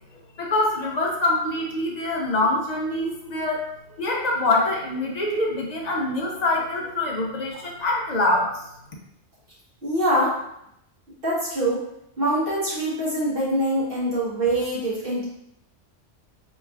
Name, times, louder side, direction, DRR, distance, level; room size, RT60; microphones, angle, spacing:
voice 1, 0.4-3.7 4.0-8.5, left 2 dB, 45° left, -1 dB, 0.6 m, -24 dB
voice 2, 9.8-10.4 11.2-11.8 12.2-15.2, right 1 dB, 50° right, -8 dB, 1.5 m, -24 dB
4.3 x 3.0 x 2.4 m, 0.77 s
omnidirectional pair, 1.3 m